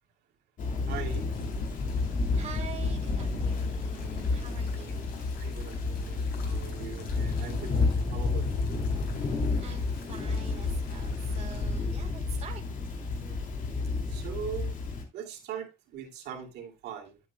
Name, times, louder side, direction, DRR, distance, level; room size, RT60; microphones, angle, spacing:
Thunder / Rain, 0.6-15.0, left 3 dB, 50° left, 2.6 m, -30 dB
voice 1, 0.9-1.3 5.4-8.6 13.2-13.4 14.1-14.8 15.1-17.2, right 8 dB, 80° right, 2.5 m, -41 dB
sound 1, 1.0-11.8, left 4 dB, 65° left, 4.3 m, -52 dB
voice 2, 2.4-5.0 9.0-12.6, right 7 dB, 40° right, 1.8 m, -46 dB
11.0 x 8.2 x 2.3 m
cardioid pair, 110°, 17 cm